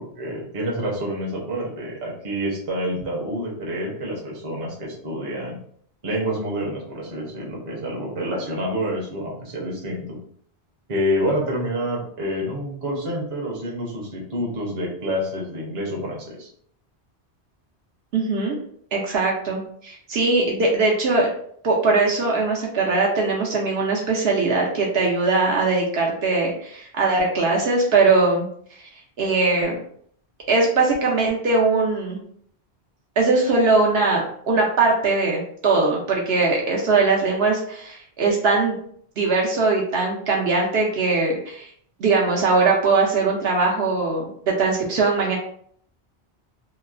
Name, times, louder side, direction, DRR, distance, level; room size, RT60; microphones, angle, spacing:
voice 1, 0.0-5.6 6.0-10.2 10.9-16.5, equal, 35° right, -3 dB, 0.7 m, -28 dB
voice 2, 18.1-18.6 18.9-21.3 21.6-28.5 28.8-28.9 29.2-29.8 30.5-32.2 33.2-38.8 39.2-41.7 42.0-45.4, right 3 dB, 70° right, -2 dB, 0.8 m, -21 dB
2.9 x 2.0 x 2.4 m, 0.62 s
omnidirectional pair, 1.1 m